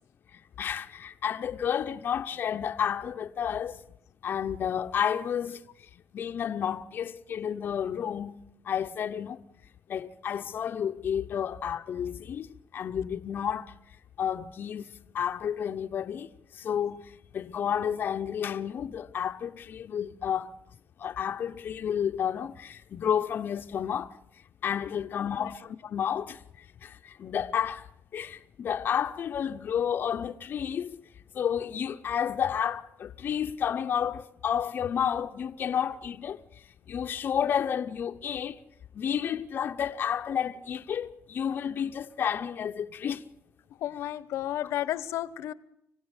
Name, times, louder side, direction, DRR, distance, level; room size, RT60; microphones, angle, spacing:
voice 1, 0.3-3.8 4.2-5.7 6.1-9.4 9.9-13.7 14.2-14.9 15.1-20.6 21.0-24.2 24.6-31.0 31.3-36.4 36.9-38.6 38.9-43.3, left 8 dB, 45° left, 0.8 m, -31 dB
voice 2, 25.0-25.5 43.8-45.5, left 12 dB, 75° left, 1.0 m, -33 dB
26.0 x 16.5 x 8.9 m
cardioid pair, 140°, 5 cm